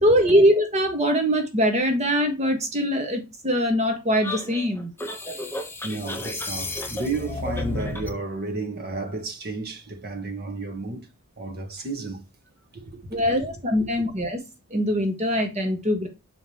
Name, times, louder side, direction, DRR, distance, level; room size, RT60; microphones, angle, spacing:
voice 1, 0.0-4.9 13.1-14.4 14.7-16.1, equal, 30° right, 1.5 m, -22 dB
sound 1, 4.2-8.2, left 2 dB, 10° left, 1.0 m, -32 dB
voice 2, 5.8-11.1 11.4-12.2 12.7-13.5, right 3 dB, 45° right, 1.4 m, -32 dB
6.4 x 5.1 x 3.0 m
head